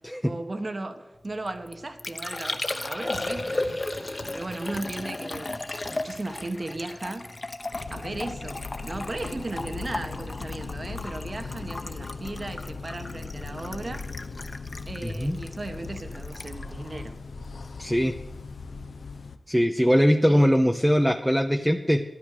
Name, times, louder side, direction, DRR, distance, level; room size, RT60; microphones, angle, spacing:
voice 1, 0.2-3.7 4.1-5.5 5.9-7.3 7.9-14.1 14.9-17.2 20.3-20.5, right 2 dB, 40° right, 1.3 m, -36 dB
Liquid, 1.2-17.9 18.1-18.7, left 2 dB, 35° left, 0.9 m, -36 dB
sound 1, 3.1-8.3, right 1 dB, 80° right, 5.6 m, -47 dB
sound 2, 7.7-19.4, left 4 dB, 80° left, 0.8 m, -38 dB
voice 2, 15.0-15.4 17.8-18.1 19.5-22.0, equal, ahead, 0.7 m, -21 dB
13.5 x 10.5 x 6.8 m
wide cardioid pair, 95°, 0 cm